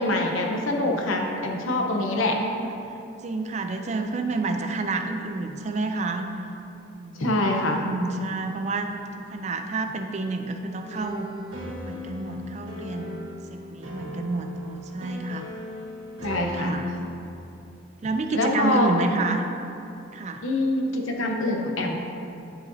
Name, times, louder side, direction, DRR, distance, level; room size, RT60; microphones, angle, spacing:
voice 1, 0.0-2.4 7.2-7.8 16.2-16.7 18.3-18.9 20.4-22.0, left 2 dB, 80° left, 1 dB, 0.8 m, -24 dB
voice 2, 2.0-2.7 3.2-6.3 6.9-11.3 11.8-15.5 16.2-16.9 18.0-19.4 20.1-20.4, right 3 dB, 35° right, 5 dB, 0.3 m, -29 dB
sound 1, 10.6-17.1, left 1 dB, 75° right, 1.6 m, -38 dB
11.0 x 4.9 x 2.7 m, 2.8 s
head